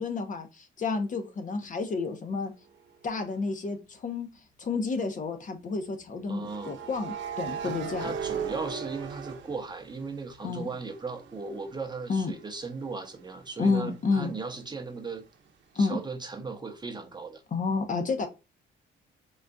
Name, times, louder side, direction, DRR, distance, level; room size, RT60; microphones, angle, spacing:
voice 1, 0.0-2.5 3.0-4.3 4.6-8.1 10.4-10.7 12.1-12.3 13.6-14.3 15.8-16.0 17.5-18.3, left 4 dB, 40° left, 0.6 m, -30 dB
sound 1, 3.2-3.3 6.4-10.3 10.7-14.3, right 6 dB, 70° right, 0.7 m, -38 dB
voice 2, 6.3-6.7 7.6-15.2 15.7-17.4, right 4 dB, 20° right, 0.6 m, -37 dB
3.8 x 2.4 x 2.2 m
cardioid pair, 90°, 20 cm